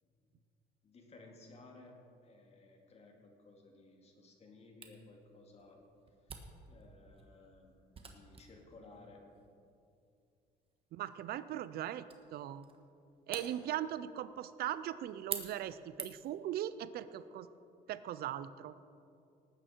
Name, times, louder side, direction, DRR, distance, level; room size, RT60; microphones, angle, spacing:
voice 1, 0.8-5.8 6.2-6.4 6.7-9.3, left 2 dB, 40° left, 1 dB, 2.3 m, -58 dB
Camera, 4.8-16.4, right 5 dB, 35° right, 1.4 m, -50 dB
voice 2, 10.9-12.7 13.3-17.5 17.9-18.7, right 11 dB, 65° right, 14 dB, 0.5 m, -39 dB
19.0 x 9.0 x 4.5 m, 2.5 s
cardioid pair, 110°, 17 cm